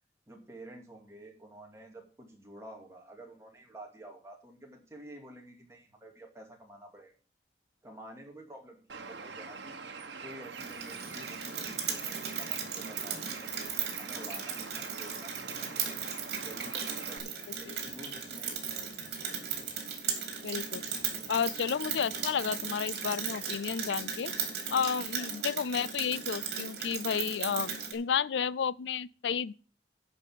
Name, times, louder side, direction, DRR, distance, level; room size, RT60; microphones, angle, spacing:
voice 1, 0.3-7.1 7.8-9.8 10.2-13.6 13.9-15.5 16.4-18.6 25.2-25.5, right 1 dB, 15° right, 2.5 m, -50 dB
Bird, 8.9-17.2, right 5 dB, 85° right, 1.3 m, -44 dB
Rain, 10.6-27.9, right 7 dB, 60° right, 3.1 m, -37 dB
voice 2, 20.4-20.8 21.3-24.3 24.7-29.5, left 7 dB, 90° left, 0.4 m, -32 dB
10.5 x 5.5 x 7.5 m
head